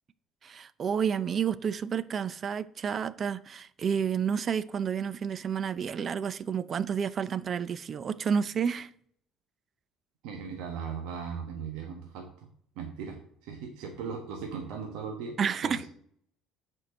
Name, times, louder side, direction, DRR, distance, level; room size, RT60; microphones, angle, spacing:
voice 1, 0.4-8.9 15.4-15.8, right 7 dB, 40° right, 0.5 m, -30 dB
voice 2, 10.2-12.5 12.7-15.9, right 6 dB, 80° right, 1.2 m, -38 dB
6.7 x 4.5 x 6.3 m
supercardioid pair, 95°, 0 cm